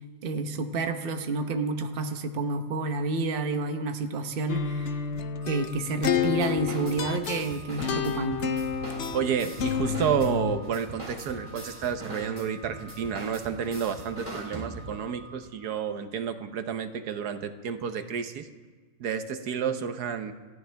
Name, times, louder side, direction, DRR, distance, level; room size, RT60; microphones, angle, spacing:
voice 1, 0.2-5.0 5.5-8.5, right 3 dB, 40° right, 6 dB, 1.0 m, -29 dB
sound 1, 4.5-10.6, left 7 dB, 55° left, 0.9 m, -30 dB
Organ, 5.3-16.1, right 1 dB, 5° right, 3.5 m, -51 dB
sound 2, 6.2-15.1, right 1 dB, 25° right, 3.5 m, -41 dB
voice 2, 9.1-18.5 19.0-20.3, right 7 dB, 80° right, 8 dB, 1.4 m, -30 dB
28.5 x 14.5 x 3.4 m, 1.4 s
omnidirectional pair, 1.7 m